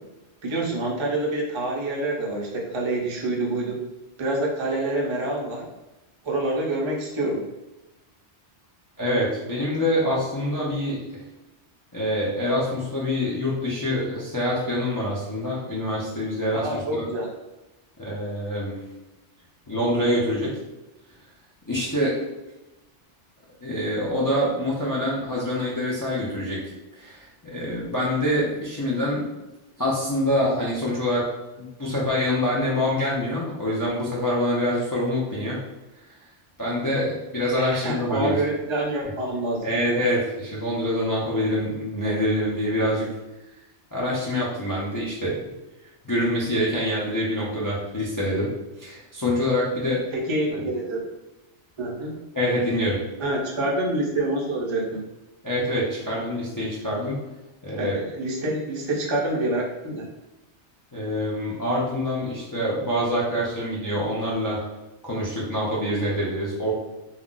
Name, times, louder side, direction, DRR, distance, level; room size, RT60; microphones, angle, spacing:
voice 1, 0.4-3.8 4.2-5.6 6.2-7.4 16.5-17.3 37.6-39.6 50.1-51.0 51.8-52.1 53.2-55.0 57.8-60.1, right 2 dB, 40° right, -3 dB, 0.5 m, -27 dB
voice 2, 9.0-11.2 11.9-17.1 18.0-18.8 19.7-20.6 21.7-22.2 23.6-29.3 29.8-31.3 31.6-35.6 36.6-38.3 39.6-43.1 43.9-45.5 46.0-50.0 50.5-50.6 52.3-53.1 55.4-57.2 57.6-58.1 60.9-64.7 65.0-66.7, left 1 dB, 30° left, -6 dB, 0.3 m, -25 dB
2.4 x 2.1 x 3.7 m, 1.0 s
omnidirectional pair, 1.2 m